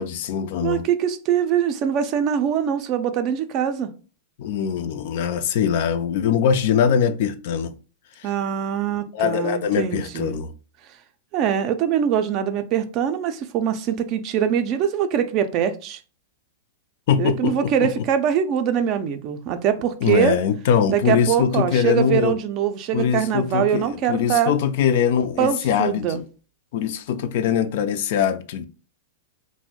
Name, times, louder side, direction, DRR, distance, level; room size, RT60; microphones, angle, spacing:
voice 1, 0.0-0.9 4.4-7.7 8.2-8.3 9.1-10.5 17.1-17.9 20.0-22.4 22.9-26.2 26.7-28.6, left 8 dB, 60° left, 0.3 m, -22 dB
voice 2, 0.6-3.9 8.2-10.4 11.3-16.0 17.2-20.4 20.9-24.5 25.4-26.2, right 9 dB, 40° right, 0.4 m, -23 dB
2.5 x 2.0 x 3.6 m
hypercardioid pair, 135°, 0 cm